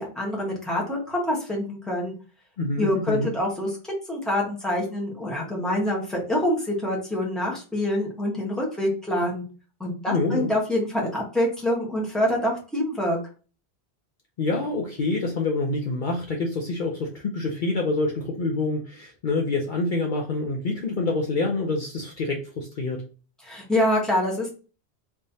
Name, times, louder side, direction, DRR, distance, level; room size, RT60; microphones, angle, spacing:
voice 1, 0.0-2.1 2.8-3.8 4.1-9.4 9.8-13.2 23.4-24.5, left 1 dB, ahead, -2 dB, 1.1 m, -26 dB
voice 2, 2.6-3.3 10.1-10.5 14.4-23.0, left 3 dB, 55° left, 0 dB, 0.7 m, -26 dB
3.6 x 3.2 x 2.7 m, 0.36 s
omnidirectional pair, 1.1 m